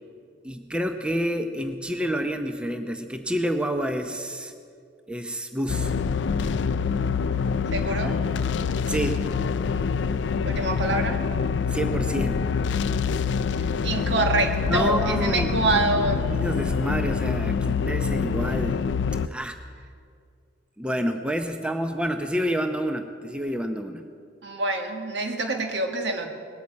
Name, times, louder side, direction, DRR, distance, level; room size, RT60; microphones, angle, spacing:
voice 1, 0.4-4.5 5.1-5.9 8.9-9.3 11.7-12.4 14.7-15.5 16.3-18.8 19.3-19.6 20.8-24.0, equal, 5° right, 6 dB, 0.6 m, -28 dB
sound 1, 5.7-19.3, left 5 dB, 75° left, 0.4 m, -26 dB
voice 2, 7.7-8.1 10.4-11.2 13.6-16.3 24.4-26.3, right 2 dB, 75° right, 4 dB, 1.8 m, -26 dB
19.5 x 8.7 x 8.6 m, 2.2 s
head